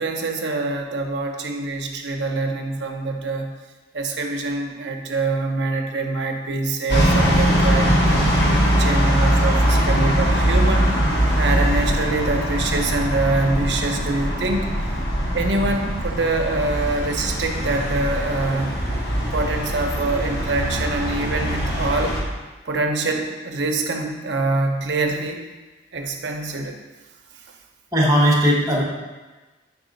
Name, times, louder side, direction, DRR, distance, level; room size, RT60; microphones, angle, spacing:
voice 1, 0.0-3.5 3.9-8.4 8.8-11.0 11.4-15.0 15.3-18.8 19.2-22.2 22.7-25.4 25.9-26.8 27.3-27.5, right 3 dB, 65° right, 3 dB, 0.7 m, -25 dB
sound 1, 6.9-22.2, equal, 60° left, 1.1 m, -21 dB
voice 2, 27.9-28.8, equal, 20° right, -3 dB, 1.0 m, -17 dB
4.8 x 4.0 x 5.0 m, 1.2 s
head